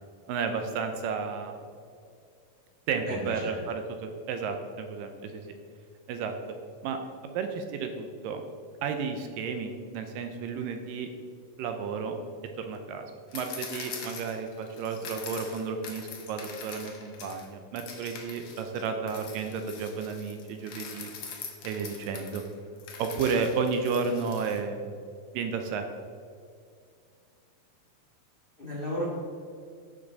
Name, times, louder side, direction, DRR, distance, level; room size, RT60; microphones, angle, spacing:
voice 1, 0.3-1.6 2.9-5.4 6.1-6.3 6.8-7.0 7.3-8.4 8.8-11.1 11.6-12.1 12.6-13.1 13.3-21.1 21.6-22.4 23.0-25.0 25.3-25.9, right 5 dB, 80° right, 6 dB, 2.1 m, -32 dB
voice 2, 3.1-3.5 28.6-29.1, equal, 80° left, -4 dB, 0.5 m, -33 dB
sound 1, 13.3-17.5 17.8-24.6, left 5 dB, 65° left, 1.4 m, -43 dB
11.0 x 7.2 x 4.0 m, 2.4 s
omnidirectional pair, 4.4 m